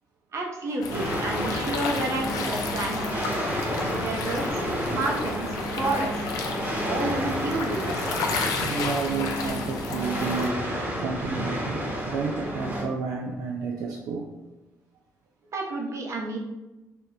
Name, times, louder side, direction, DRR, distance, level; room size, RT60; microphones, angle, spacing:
voice 1, 0.3-3.5 3.8-6.1 6.8-8.1 15.5-16.4, right 2 dB, 55° right, 1 dB, 0.9 m, -30 dB
sound 1, 0.8-10.5, left 4 dB, 80° left, 0.5 m, -33 dB
sound 2, 0.9-12.8, equal, 30° right, 1.1 m, -31 dB
voice 2, 8.4-14.3, right 5 dB, 80° right, 0 dB, 0.4 m, -31 dB
3.4 x 2.2 x 4.1 m, 1.0 s
supercardioid pair, 65°, 6 cm